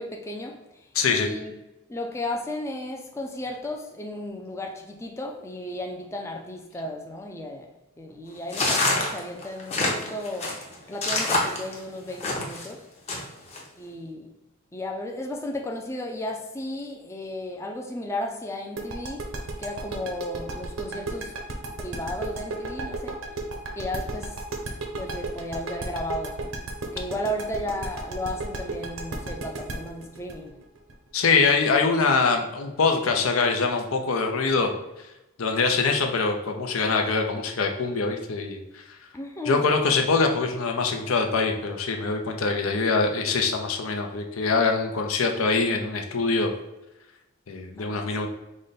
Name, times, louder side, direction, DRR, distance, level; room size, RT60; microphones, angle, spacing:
voice 1, 0.0-1.5 1.9-7.7 8.0-10.6 10.9-12.9 13.8-14.3 14.7-21.4 21.8-23.2 23.8-24.5 25.0-26.6 26.9-30.5 39.1-39.7 47.8-48.3, left 1 dB, 15° left, 0.4 m, -34 dB
voice 2, 0.9-1.3 31.1-34.7 35.4-38.8 39.5-46.5 47.5-48.3, left 4 dB, 90° left, 0.6 m, -24 dB
sound 1, 8.5-12.7 13.1-13.6, left 2 dB, 30° left, 0.7 m, -26 dB
sound 2, 18.8-31.5, right 2 dB, 70° right, 0.7 m, -33 dB
5.0 x 2.2 x 3.9 m
head